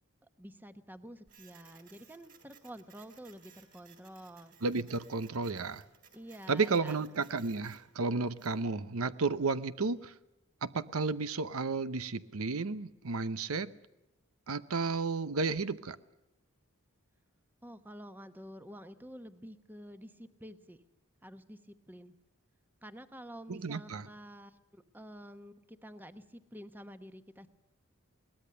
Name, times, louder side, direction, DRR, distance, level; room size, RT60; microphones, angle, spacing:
voice 1, 0.4-4.5 6.1-7.0 17.6-20.8 21.2-22.1 22.8-27.5, equal, 10° right, 10 dB, 1.0 m, -49 dB
Printer, 1.3-8.6, right 7 dB, 40° right, 3.7 m, -61 dB
voice 2, 4.6-5.8 6.5-10.1 10.6-13.7 14.5-16.0 23.5-24.1, right 4 dB, 80° right, 14 dB, 0.8 m, -32 dB
22.0 x 19.0 x 6.8 m, 0.95 s
head